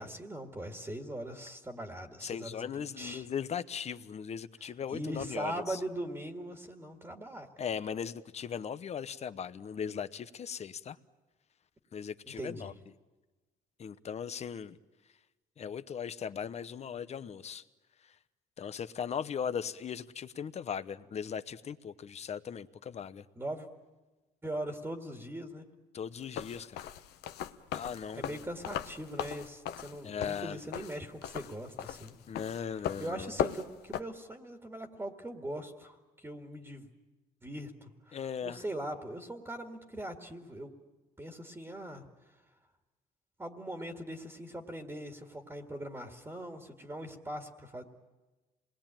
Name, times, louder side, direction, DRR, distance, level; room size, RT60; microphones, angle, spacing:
voice 1, 0.0-3.3 4.6-7.5 12.3-12.7 23.4-23.7 24.4-25.6 28.1-32.1 32.5-36.9 37.4-40.7 41.2-42.0 43.4-47.8, right 1 dB, 15° right, 4 dB, 2.0 m, -41 dB
voice 2, 2.2-5.8 7.6-11.0 11.9-12.7 13.8-14.8 15.6-17.6 18.6-23.2 25.9-26.9 27.7-28.4 30.0-30.6 32.3-33.4 38.1-38.6, left 7 dB, 40° left, 13 dB, 1.0 m, -38 dB
sound 1, 26.2-34.0, left 10 dB, 75° left, 1.0 m, -37 dB
26.5 x 20.5 x 9.0 m, 1.2 s
cardioid pair, 110°, 17 cm